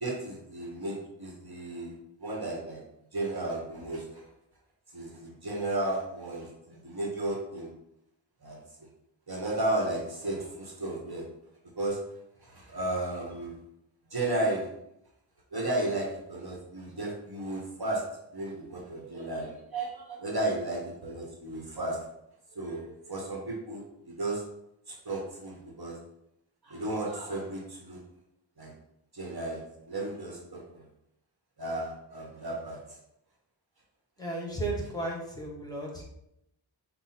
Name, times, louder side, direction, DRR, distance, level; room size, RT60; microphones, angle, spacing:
voice 1, 0.0-1.9 2.2-2.8 3.1-4.3 4.9-7.7 8.4-8.6 9.3-11.2 11.8-12.0 12.4-13.6 14.1-14.7 15.5-18.0 18.3-22.0 22.5-24.4 24.9-26.0 26.6-28.0 28.6-28.7 29.1-30.8 31.6-32.8, right 2 dB, 55° right, -1 dB, 1.1 m, -34 dB
voice 2, 34.2-36.0, right 2 dB, 10° left, -2 dB, 1.2 m, -34 dB
5.4 x 2.2 x 4.2 m, 0.80 s
wide cardioid pair, 60°, 46 cm